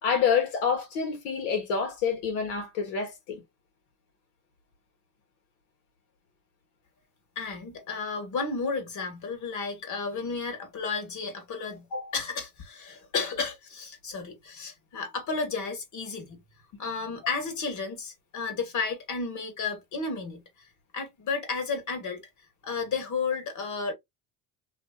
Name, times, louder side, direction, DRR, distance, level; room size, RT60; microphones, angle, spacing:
voice 1, 0.0-3.4 11.9-12.1, left 6 dB, 85° left, 1.3 m, -27 dB
voice 2, 7.3-11.9 12.1-16.4 16.8-20.4 20.9-22.2 22.6-23.9, left 4 dB, 45° left, 1.3 m, -32 dB
2.7 x 2.7 x 2.2 m
supercardioid pair, 100°, 42 cm